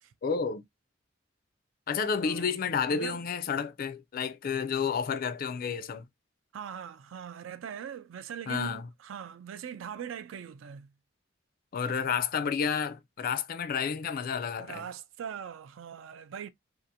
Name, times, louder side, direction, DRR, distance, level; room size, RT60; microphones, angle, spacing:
voice 1, 0.2-0.6 1.9-6.0 8.5-8.8 11.7-14.8, left 6 dB, 45° left, 0.4 m, -30 dB
voice 2, 2.2-2.6 2.9-3.2 6.5-10.9 14.6-16.5, right 8 dB, 70° right, 0.3 m, -41 dB
2.7 x 2.4 x 2.5 m
head